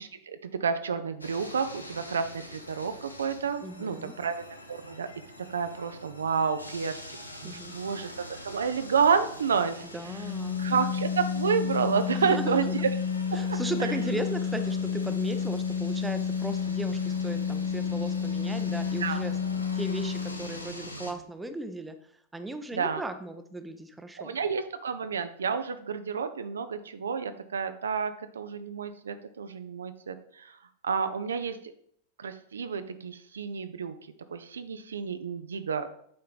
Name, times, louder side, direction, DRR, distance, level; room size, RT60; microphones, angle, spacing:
voice 1, 0.0-5.1 5.5-9.8 10.6-12.7 13.5-13.9 19.0-19.2 22.7-23.0 24.2-30.6 30.8-31.6 32.2-34.0 34.3-35.9, right 6 dB, 70° right, 10 dB, 0.5 m, -30 dB
sound 1, 1.2-21.1, left 1 dB, 85° left, 0.8 m, -44 dB
voice 2, 3.6-4.2 7.4-7.7 9.9-10.6 12.1-12.8 13.3-19.4 19.7-24.4, right 2 dB, 10° right, 8 dB, 0.7 m, -37 dB
Organ, 10.1-20.6, left 6 dB, 40° left, 0.5 m, -30 dB
8.5 x 4.4 x 3.9 m, 0.66 s
figure-of-eight pair, 90°, 0 cm